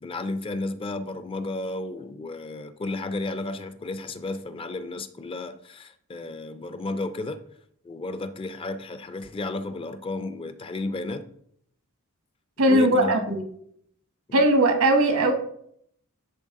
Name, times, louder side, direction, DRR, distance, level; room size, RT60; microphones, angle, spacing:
voice 1, 0.0-7.4 7.8-11.3 12.6-13.4 14.3-14.5, left 2 dB, 25° left, 0.4 m, -33 dB
voice 2, 12.6-13.4 14.3-15.3, right 1 dB, 80° right, 1.1 m, -19 dB
10.5 x 3.9 x 3.6 m
head